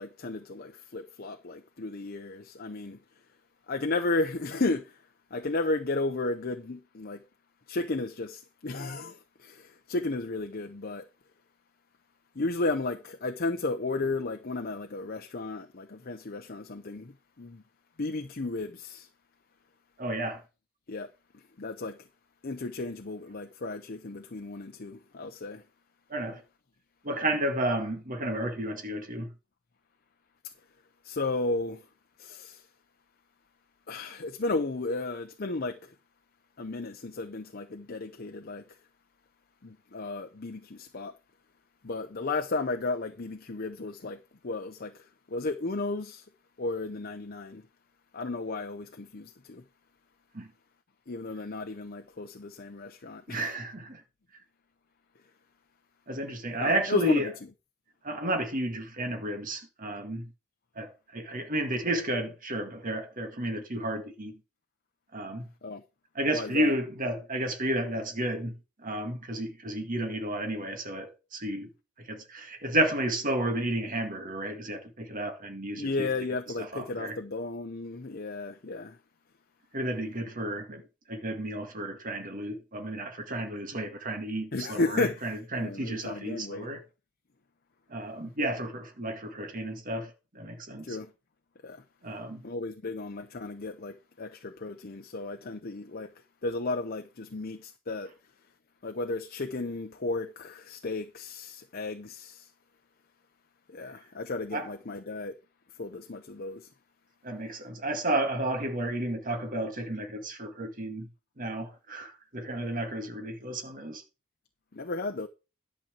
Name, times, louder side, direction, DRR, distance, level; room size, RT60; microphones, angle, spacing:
voice 1, 0.0-3.0 3.7-5.0 5.3-7.2 7.7-11.1 12.4-17.6 18.0-19.1 20.9-22.0 22.4-25.6 31.0-31.8 32.2-32.6 33.9-35.9 36.6-38.6 39.6-41.1 41.8-46.2 46.6-47.6 48.1-49.6 51.1-53.4 56.6-57.3 65.6-65.8 66.3-66.7 75.8-79.0 84.5-85.2 85.5-86.7 90.8-91.1 91.6-91.8 92.4-96.1 96.4-98.1 98.8-102.5 103.7-105.3 105.8-106.7 114.7-115.3, left 3 dB, 45° left, 0.7 m, -34 dB
voice 2, 20.0-20.4 26.1-26.4 27.0-29.3 50.3-50.5 53.3-54.0 56.1-57.3 58.0-60.3 60.8-64.4 65.1-65.5 66.1-68.5 68.8-71.7 72.0-76.1 76.6-77.2 79.7-80.8 81.1-86.8 87.9-91.0 92.0-92.4 104.5-104.7 107.2-111.1 111.4-114.0, right 1 dB, 40° right, 2.0 m, -32 dB
11.0 x 4.4 x 7.4 m
head